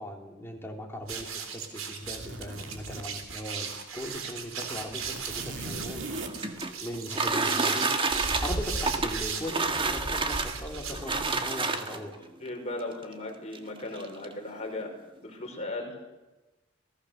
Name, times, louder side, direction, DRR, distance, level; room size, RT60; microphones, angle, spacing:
voice 1, 0.0-7.9 8.4-12.3, equal, 10° left, 1 dB, 3.3 m, -39 dB
sound 1, 1.0-11.5, right 4 dB, 85° right, 3.7 m, -36 dB
sound 2, 2.0-3.7 4.0-4.2 4.4-7.5 8.9-9.5 9.8-10.1, right 2 dB, 65° right, 2.4 m, -40 dB
sound 3, 5.9-12.1 13.0-13.1 13.5-13.6 13.9-14.3, right 3 dB, 25° right, 1.8 m, -29 dB
voice 2, 12.4-14.9 15.2-16.0, left 2 dB, 35° left, 2 dB, 5.4 m, -37 dB
28.5 x 18.5 x 6.6 m, 1.1 s
head